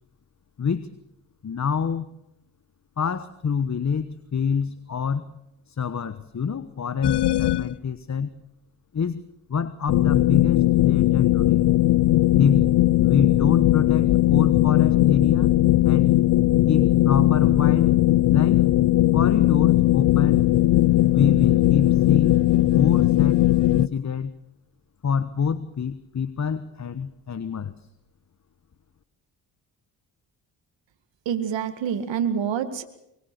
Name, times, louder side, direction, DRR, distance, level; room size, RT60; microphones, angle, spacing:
voice 1, 0.6-0.9 1.4-2.1 3.0-5.3 5.7-8.3 8.9-11.7 12.4-12.8 13.0-15.5 15.8-16.1 16.7-17.9 18.3-18.6 19.1-20.4 21.1-24.3 25.0-27.7, left 6 dB, 35° left, 14 dB, 1.3 m, -26 dB
sound 1, 7.0-7.7 9.9-23.9, left 15 dB, 60° left, 0.8 m, -19 dB
voice 2, 31.3-32.9, right 8 dB, 70° right, 8 dB, 2.1 m, -26 dB
23.5 x 21.5 x 6.8 m, 0.82 s
supercardioid pair, 55°, 46 cm